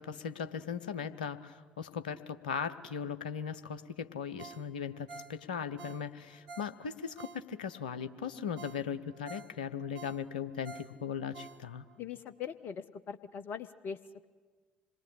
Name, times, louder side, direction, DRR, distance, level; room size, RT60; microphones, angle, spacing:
voice 1, 0.0-11.8, left 7 dB, 75° left, 11 dB, 0.9 m, -38 dB
Ringtone, 4.4-7.8 8.2-8.3 8.6-12.0 12.4-12.5, right 5 dB, 75° right, 1.4 m, -50 dB
voice 2, 12.0-14.0, left 7 dB, 50° left, 13 dB, 0.8 m, -41 dB
26.5 x 21.0 x 8.6 m, 1.5 s
figure-of-eight pair, 50°, 5 cm